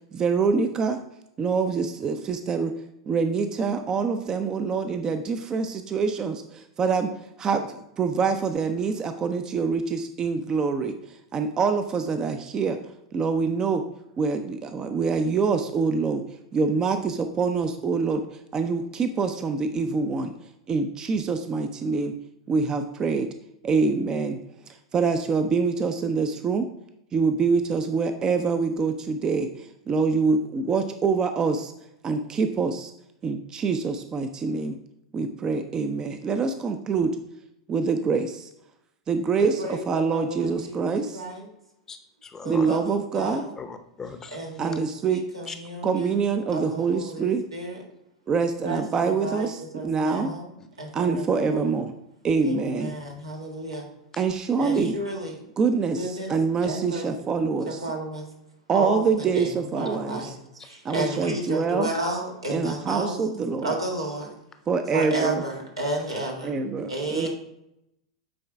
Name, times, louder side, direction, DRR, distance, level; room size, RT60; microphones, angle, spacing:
voice 1, 0.1-1.0 1.4-2.7 3.1-7.1 7.4-10.9 11.3-12.8 13.1-13.8 14.2-16.2 16.5-18.2 18.5-20.3 20.7-22.1 22.5-23.3 23.6-24.4 24.9-26.7 27.1-31.7 32.0-32.9 33.2-34.8 35.1-37.2 37.7-38.5 39.1-41.2 42.5-43.5 44.6-45.5 45.8-47.5 48.3-50.4 50.9-51.9 52.2-52.9 54.2-55.0 55.6-57.8 58.7-60.3 60.8-61.9 62.5-63.7 64.7-65.4 66.4-67.3, right 5 dB, 25° right, 8 dB, 0.5 m, -25 dB
voice 2, 39.4-41.5 42.4-43.5 44.3-46.1 46.5-47.8 48.6-50.5 50.8-51.8 52.4-53.9 54.6-55.4 56.0-56.3 56.6-57.3 57.7-58.3 58.7-63.2 63.6-64.3 64.9-66.6 66.9-67.3, right 1 dB, 90° right, -1 dB, 1.7 m, -32 dB
voice 3, 42.2-42.7 43.6-44.4 45.5-45.6, left 5 dB, 20° left, 7 dB, 0.7 m, -38 dB
8.7 x 3.9 x 3.4 m, 0.83 s
figure-of-eight pair, 95°, 3 cm